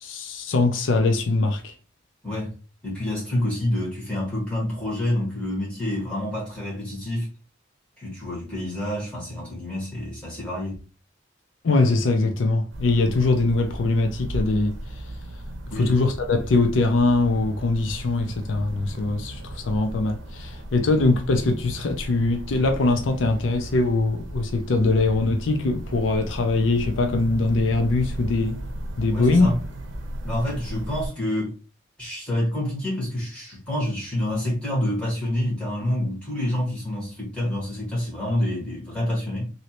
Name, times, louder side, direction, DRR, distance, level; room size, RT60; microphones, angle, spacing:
voice 1, 0.0-1.7 11.6-14.8 15.8-28.6 29.0-29.5, left 3 dB, 85° left, 0.5 m, -22 dB
voice 2, 2.8-7.3 8.0-10.8 15.6-16.0 29.1-29.6 30.2-31.5 32.0-39.5, left 1 dB, 5° left, 1.7 m, -27 dB
sound 1, 12.7-31.1, right 1 dB, 80° right, 0.7 m, -36 dB
3.0 x 2.7 x 2.9 m
head